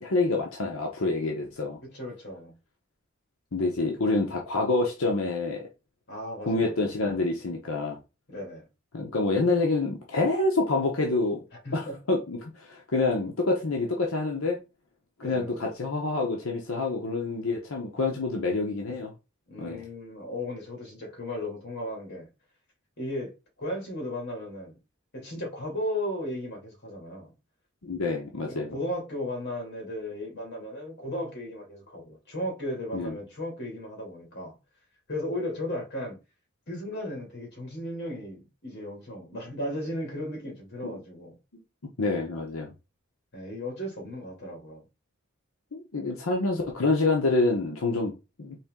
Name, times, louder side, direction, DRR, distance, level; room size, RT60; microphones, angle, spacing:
voice 1, 0.0-1.8 3.5-5.7 6.4-8.0 8.9-11.4 11.7-14.6 15.2-19.1 19.6-19.8 27.8-28.8 32.9-33.2 42.0-42.7 45.7-48.1 48.4-48.6, left 3 dB, 85° left, 0.9 m, -27 dB
voice 2, 1.9-2.5 6.1-6.9 8.3-8.7 11.6-12.0 15.2-15.7 19.5-22.3 23.0-23.3 23.6-24.8 25.1-27.3 28.4-34.6 35.1-36.2 36.7-41.3 43.3-44.8, left 1 dB, 55° left, 2.3 m, -35 dB
4.3 x 3.2 x 3.6 m
head